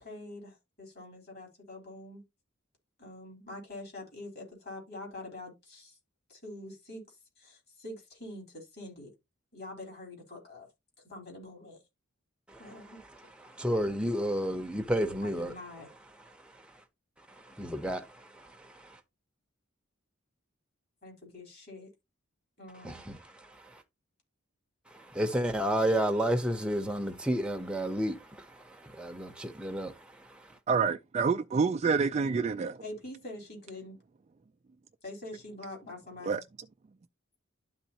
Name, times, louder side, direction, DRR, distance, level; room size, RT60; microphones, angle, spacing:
voice 1, 0.0-2.2 3.0-6.0 6.3-7.0 7.4-9.1 9.5-10.7 11.1-11.8 12.6-13.0 15.2-15.9 21.0-21.9 22.6-23.0 32.8-34.0 35.0-36.4, left 2 dB, 50° left, 3.6 m, -45 dB
voice 2, 13.4-15.5 16.2-16.5 17.3-19.0 22.8-23.8 24.9-30.6, equal, 5° right, 0.7 m, -32 dB
voice 3, 30.7-32.8 36.3-36.4, right 5 dB, 30° right, 0.3 m, -27 dB
11.5 x 4.0 x 2.8 m
head